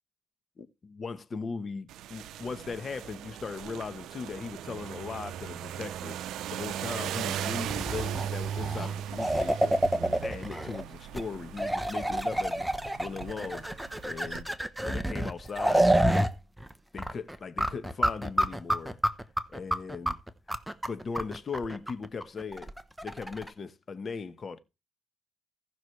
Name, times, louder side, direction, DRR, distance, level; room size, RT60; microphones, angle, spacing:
voice 1, 0.6-13.7 14.0-14.5 14.8-16.3 16.9-19.0 19.5-20.2 20.9-22.7 23.0-24.6, left 5 dB, 40° left, 1.2 m, -38 dB
sound 1, 1.9-14.4, right 10 dB, 80° right, 0.6 m, -38 dB
sound 2, 7.7-10.8 11.1-11.2 11.6-16.3 16.6-16.7 17.0-23.5, right 1 dB, 5° right, 0.9 m, -28 dB
17.0 x 6.1 x 3.3 m
cardioid pair, 90°, 0 cm